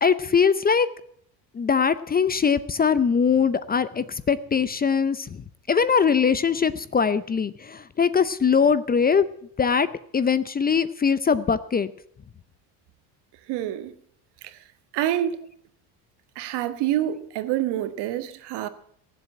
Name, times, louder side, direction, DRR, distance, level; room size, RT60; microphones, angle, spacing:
voice 1, 0.0-0.9 1.5-5.4 5.7-9.3 9.6-9.9 10.1-11.9, left 6 dB, 20° left, 0.6 m, -21 dB
voice 2, 13.5-13.9 14.9-15.4 16.3-18.7, right 12 dB, 65° right, 1.6 m, -26 dB
18.0 x 7.6 x 8.6 m
supercardioid pair, 105°, 43 cm